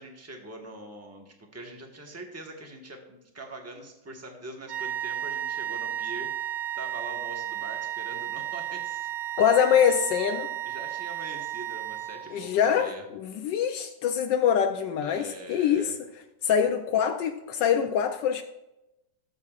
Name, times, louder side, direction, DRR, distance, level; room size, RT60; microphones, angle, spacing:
voice 1, 0.0-9.1 10.6-13.1 15.0-15.9, right 1 dB, 10° right, 1.1 m, -43 dB
sound 1, 4.7-12.6, right 12 dB, 75° right, 1.5 m, -33 dB
voice 2, 9.4-10.5 12.3-15.9 16.4-18.4, left 8 dB, 80° left, 1.3 m, -24 dB
17.5 x 7.4 x 2.4 m
omnidirectional pair, 1.9 m